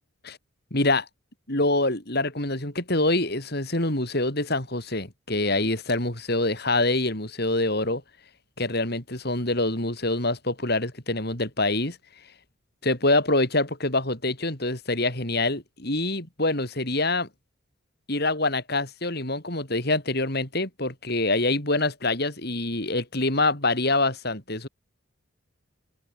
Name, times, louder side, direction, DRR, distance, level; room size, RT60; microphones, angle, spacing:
voice 1, 0.7-1.1 1.5-8.0 8.6-12.0 12.8-17.3 18.1-24.7, left 2 dB, 45° left, 4.5 m, -25 dB
head